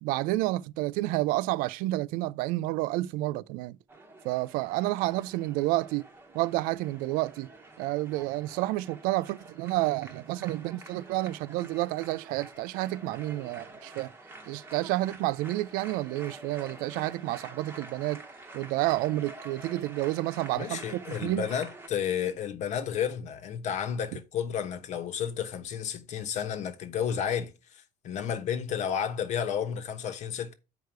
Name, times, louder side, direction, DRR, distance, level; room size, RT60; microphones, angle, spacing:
voice 1, 0.0-3.8 4.2-6.0 6.3-7.5 7.8-14.1 14.5-18.2 18.5-21.5, right 18 dB, 85° right, 0.4 m, -30 dB
sound 1, 3.9-21.9, right 2 dB, 15° right, 1.1 m, -48 dB
voice 2, 20.6-30.5, left 8 dB, 55° left, 1.2 m, -32 dB
7.9 x 4.8 x 4.7 m
cardioid pair, 145°, 14 cm